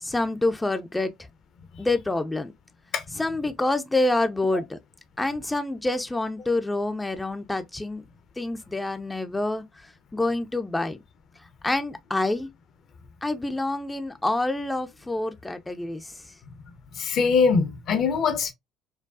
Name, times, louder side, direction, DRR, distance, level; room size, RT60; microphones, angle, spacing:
voice 1, 0.0-1.1 1.8-2.5 3.2-4.8 5.2-8.0 8.4-9.6 10.1-11.0 11.6-12.5 13.2-16.1, left 2 dB, 10° left, 0.5 m, -27 dB
voice 2, 16.9-18.5, left 5 dB, 50° left, 0.7 m, -22 dB
4.6 x 2.2 x 2.4 m
hypercardioid pair, 55°, 0 cm